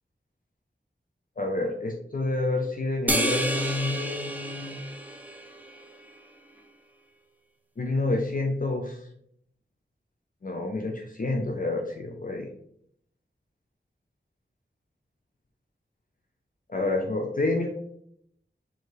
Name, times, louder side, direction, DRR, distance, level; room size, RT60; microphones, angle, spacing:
voice 1, 1.4-4.8 7.8-9.0 10.4-12.5 16.7-17.7, left 2 dB, 45° left, 2 dB, 0.5 m, -28 dB
sound 1, 3.1-5.8, right 1 dB, 10° right, 0.5 m, -30 dB
4.5 x 2.8 x 3.1 m, 0.69 s
wide cardioid pair, 50°, 20 cm